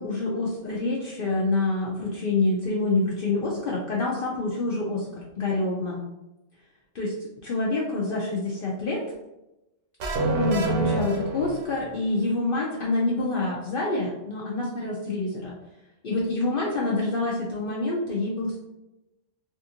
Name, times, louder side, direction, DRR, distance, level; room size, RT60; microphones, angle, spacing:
voice 1, 0.0-6.0 7.0-7.1 7.4-9.0 10.2-15.5 16.0-18.6, left 2 dB, 60° left, -4 dB, 0.7 m, -27 dB
sound 1, 10.0-12.0, right 2 dB, 85° right, 1.0 m, -27 dB
3.5 x 2.5 x 2.7 m, 0.93 s
omnidirectional pair, 1.2 m